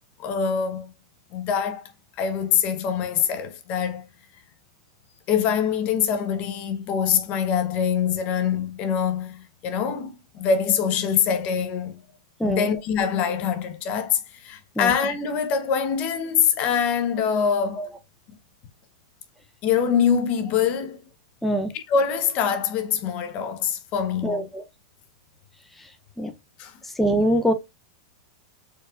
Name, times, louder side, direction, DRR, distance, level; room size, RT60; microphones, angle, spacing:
voice 1, 0.2-0.9 1.3-1.9 2.2-4.1 5.3-12.0 12.4-17.9 19.6-21.0 21.7-24.5 26.6-26.8, left 7 dB, 40° left, 0.8 m, -24 dB
voice 2, 24.2-24.6 26.2-26.3 27.0-27.5, right 1 dB, 5° left, 0.6 m, -23 dB
4.5 x 3.1 x 2.4 m
hypercardioid pair, 125°, 3 cm